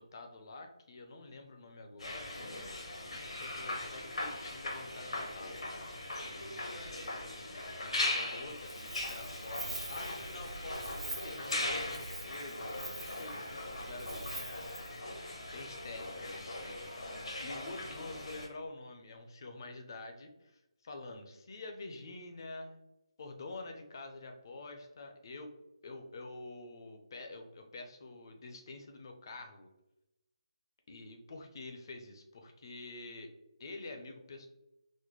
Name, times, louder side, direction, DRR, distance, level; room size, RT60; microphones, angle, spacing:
voice 1, 0.0-5.7 6.3-14.7 15.5-16.9 17.4-22.8 23.2-25.5 25.8-29.7 30.9-33.3 33.6-34.5, left 2 dB, 45° left, 5 dB, 0.5 m, -48 dB
sound 1, 2.0-18.5, left 2 dB, 80° left, 1.1 m, -40 dB
Wind, 8.5-15.0, right 2 dB, 90° right, 0.7 m, -46 dB
4.1 x 2.1 x 3.1 m, 0.93 s
hypercardioid pair, 165°, 3 cm